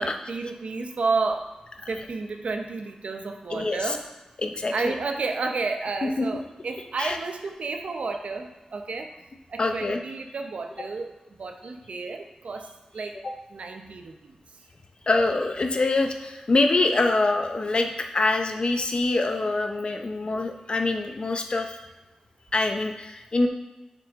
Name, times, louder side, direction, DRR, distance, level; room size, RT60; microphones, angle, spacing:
voice 1, 0.0-1.5 1.9-4.0 4.7-9.1 9.5-11.1 11.4-12.7 12.9-13.1 13.5-14.4, right 3 dB, 75° right, 5 dB, 0.7 m, -31 dB
voice 2, 3.5-4.0 4.4-5.0 6.2-6.3 7.0-7.2 9.6-10.0 13.2-13.3 15.1-21.8 22.5-23.5, left 2 dB, 50° left, 4 dB, 0.7 m, -25 dB
6.8 x 6.1 x 3.6 m, 1.1 s
wide cardioid pair, 100°, 2 cm